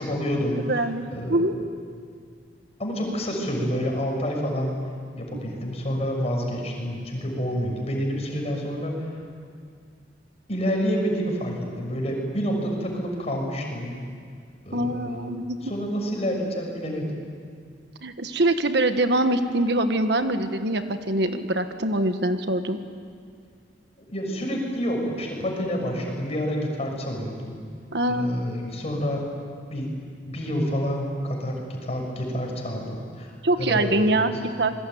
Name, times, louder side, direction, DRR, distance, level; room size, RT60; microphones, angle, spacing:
voice 1, 0.0-0.6 1.1-1.5 2.8-4.8 5.2-9.1 10.5-14.0 14.6-15.3 15.6-17.2 24.0-27.6 28.1-29.3 29.7-29.9 30.3-33.3 33.6-34.2, equal, 35° left, 1 dB, 6.4 m, -28 dB
voice 2, 0.7-1.0 1.3-1.5 14.7-15.6 18.0-22.8 27.9-28.3 33.4-34.7, right 1 dB, 65° right, 8 dB, 1.5 m, -24 dB
27.0 x 21.5 x 9.4 m, 2.1 s
head